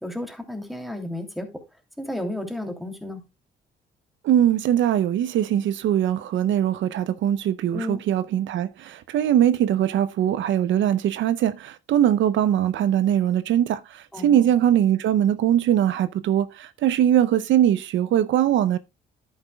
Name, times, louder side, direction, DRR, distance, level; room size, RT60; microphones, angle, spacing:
voice 1, 0.0-1.5 2.0-3.2 7.7-8.0 14.1-14.5, left 1 dB, ahead, 2.7 m, -32 dB
voice 2, 4.2-18.8, right 10 dB, 70° right, 0.6 m, -21 dB
10.5 x 9.5 x 2.2 m
cardioid pair, 90°, 20 cm